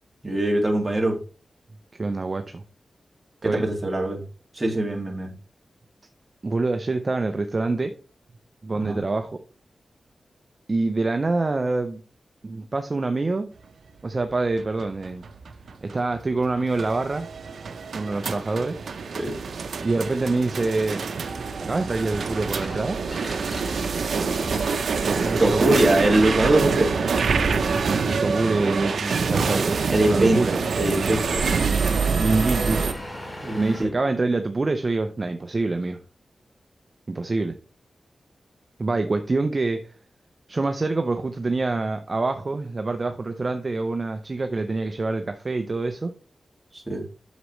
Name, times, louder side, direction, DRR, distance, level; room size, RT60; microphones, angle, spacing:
voice 1, 0.2-1.2 3.4-4.2 4.5-5.3 8.8-9.0 19.1-19.4 25.4-26.9 29.9-31.4 33.4-33.9 46.9-47.0, right 1 dB, 20° right, 0 dB, 2.0 m, -22 dB
voice 2, 2.0-2.6 3.4-3.7 6.4-7.9 8.6-9.4 10.7-12.0 12.4-13.5 14.0-15.2 15.8-17.3 17.9-18.8 19.8-21.0 21.6-23.0 25.0-25.7 27.5-30.5 32.1-32.9 33.6-36.0 37.1-37.6 38.8-39.8 40.5-46.1, right 3 dB, 40° right, 7 dB, 0.6 m, -26 dB
sound 1, 14.3-32.9, right 5 dB, 85° right, 0.7 m, -26 dB
Engine, 22.5-34.0, left 1 dB, 30° left, 2.1 m, -40 dB
8.0 x 6.4 x 3.1 m, 0.37 s
wide cardioid pair, 90°, 0 cm